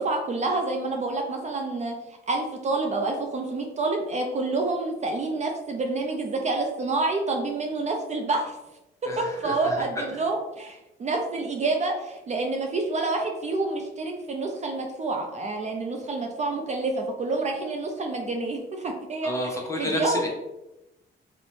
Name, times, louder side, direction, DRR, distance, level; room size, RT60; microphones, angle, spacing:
voice 1, 0.0-2.0 2.3-8.6 9.2-20.3, right 3 dB, 35° right, 2 dB, 0.4 m, -28 dB
voice 2, 9.1-10.0 19.2-20.3, left 1 dB, 15° left, -1 dB, 0.7 m, -30 dB
2.6 x 2.0 x 3.1 m, 0.94 s
cardioid pair, 90°, 20 cm